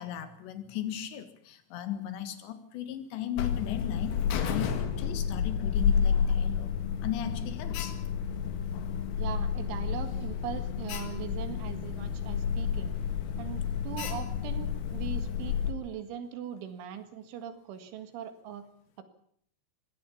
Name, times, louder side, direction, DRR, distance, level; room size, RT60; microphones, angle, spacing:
voice 1, 0.0-6.7 7.0-8.0, left 11 dB, 70° left, 9 dB, 3.8 m, -37 dB
Alarm, 3.4-15.7, left 7 dB, 85° left, 4.6 m, -30 dB
voice 2, 9.2-12.9 13.4-18.7, right 9 dB, 75° right, 9 dB, 4.2 m, -40 dB
22.5 x 17.0 x 7.1 m, 0.67 s
omnidirectional pair, 5.7 m